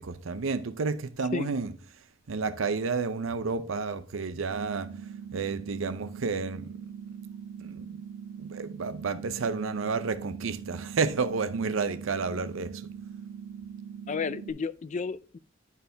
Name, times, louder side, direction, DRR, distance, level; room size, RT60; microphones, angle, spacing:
voice 1, 0.0-1.7 2.3-4.9 5.3-6.7 7.6-8.0 8.4-12.8, right 4 dB, 85° right, 0.6 m, -31 dB
sound 1, 4.5-14.5, right 7 dB, 65° right, 1.0 m, -42 dB
voice 2, 14.1-15.4, left 5 dB, 35° left, 0.4 m, -32 dB
10.5 x 4.6 x 3.4 m
head